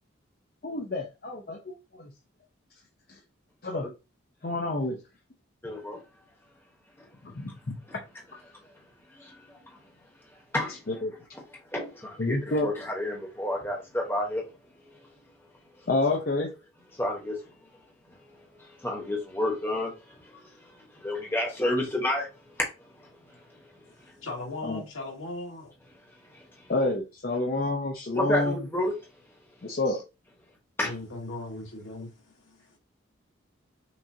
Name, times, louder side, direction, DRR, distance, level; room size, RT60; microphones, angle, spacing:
voice 1, 0.6-2.1 3.6-3.9 4.4-5.0 7.2-7.8 10.9-11.1 12.2-12.7 15.9-16.5 24.6-24.8 26.7-28.6 29.6-30.0, left 2 dB, 45° left, 0.6 m, -28 dB
voice 2, 5.6-6.0 9.2-9.8 10.5-10.8 11.7-14.4 16.1-16.2 17.0-17.4 18.6-20.0 20.3-20.4 20.8-22.3 22.6-22.7 26.3-26.4 28.1-29.0 30.8-30.9, left 1 dB, 10° left, 1.0 m, -30 dB
voice 3, 23.9-25.7 30.8-32.8, left 2 dB, 85° left, 1.7 m, -39 dB
5.8 x 2.5 x 2.7 m
head